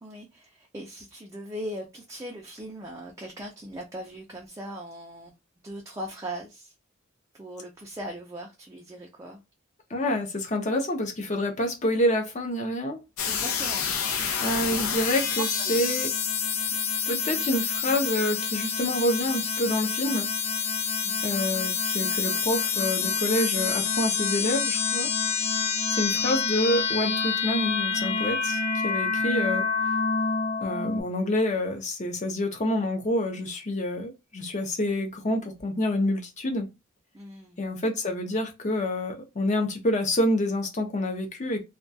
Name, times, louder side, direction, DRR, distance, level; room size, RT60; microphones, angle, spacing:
voice 1, 0.0-5.3 5.6-6.7 7.3-9.4 13.2-13.8 14.8-14.9 15.4-15.8 21.0-21.3 37.1-37.6, right 1 dB, 15° right, 0.3 m, -39 dB
voice 2, 9.9-13.0 14.4-16.1 17.1-20.3 21.2-25.1 25.9-29.7 30.6-36.7 37.6-41.6, left 1 dB, 35° left, 0.6 m, -27 dB
sound 1, 13.2-31.0, left 5 dB, 90° left, 0.5 m, -27 dB
2.3 x 2.2 x 2.6 m
head